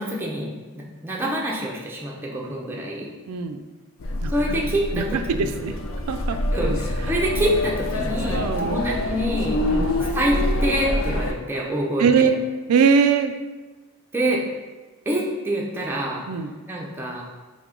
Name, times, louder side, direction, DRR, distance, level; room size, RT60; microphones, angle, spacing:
voice 1, 0.0-3.1 4.3-5.1 5.4-5.5 6.5-9.6 10.1-10.4 10.6-12.3 14.1-14.4 15.1-16.2 16.7-17.2, right 1 dB, 10° right, -3 dB, 0.5 m, -26 dB
voice 2, 3.3-3.6 4.2-4.6 4.9-5.8 6.1-6.8 8.3-8.8 9.7-10.0 12.0-12.4 12.7-13.3 16.3-16.5, right 6 dB, 90° right, 8 dB, 0.3 m, -22 dB
sound 1, 4.0-11.3, left 1 dB, 65° left, 0.4 m, -26 dB
5.9 x 2.2 x 3.7 m, 1.3 s
head